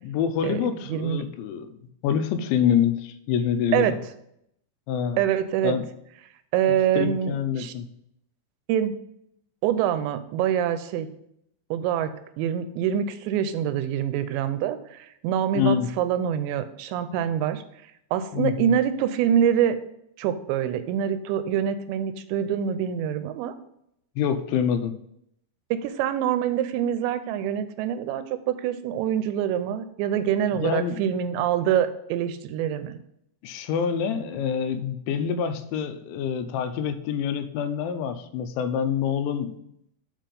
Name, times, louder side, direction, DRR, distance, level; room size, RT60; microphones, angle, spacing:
voice 1, 0.0-4.0 4.9-5.2 5.6-5.9 7.0-7.9 15.5-15.9 18.3-18.7 24.2-25.0 30.5-31.0 33.4-39.6, left 8 dB, 90° left, 10 dB, 3.0 m, -26 dB
voice 2, 0.9-1.2 3.7-3.9 5.2-5.8 6.5-7.7 8.7-8.9 9.6-11.1 11.7-12.1 12.4-17.6 18.1-19.8 20.2-23.5 25.7-33.0, right 9 dB, 85° right, 11 dB, 2.8 m, -25 dB
7.4 x 5.0 x 5.3 m, 0.75 s
omnidirectional pair, 5.2 m